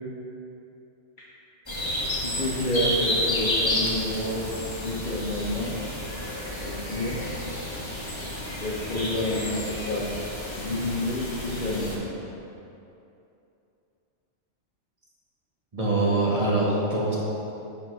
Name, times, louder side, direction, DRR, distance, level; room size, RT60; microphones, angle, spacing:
sound 1, 1.7-12.0, left 1 dB, 25° left, 1.2 m, -31 dB
voice 1, 2.2-4.4 4.8-5.7 6.6-7.2 8.6-10.1 10.6-12.1, left 1 dB, 45° left, -6 dB, 1.1 m, -29 dB
voice 2, 15.7-17.2, right 2 dB, 30° right, -6 dB, 1.6 m, -23 dB
11.0 x 3.9 x 4.7 m, 2.7 s
omnidirectional pair, 1.2 m